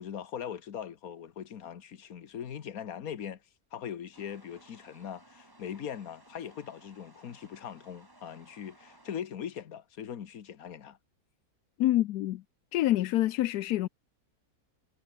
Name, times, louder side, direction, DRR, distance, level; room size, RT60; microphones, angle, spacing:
voice 1, 0.0-3.4 3.7-11.0, left 8 dB, 70° left, 1.7 m, -40 dB
sound 1, 4.1-9.2, right 1 dB, 15° right, 2.0 m, -59 dB
voice 2, 11.8-12.4 12.7-13.9, left 14 dB, 85° left, 1.2 m, -26 dB
omnidirectional pair, 1.6 m